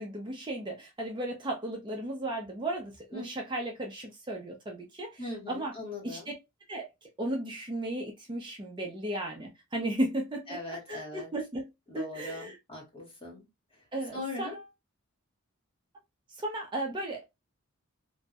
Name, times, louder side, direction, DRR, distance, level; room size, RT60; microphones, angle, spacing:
voice 1, 0.0-5.7 6.0-6.3 6.7-10.6 10.9-11.7 11.9-12.6 13.9-14.6 16.4-17.2, right 1 dB, 20° right, 0.4 m, -35 dB
voice 2, 5.2-6.3 10.5-11.3 11.9-13.5 14.1-14.6, left 2 dB, 25° left, 0.8 m, -40 dB
2.6 x 2.1 x 2.3 m
head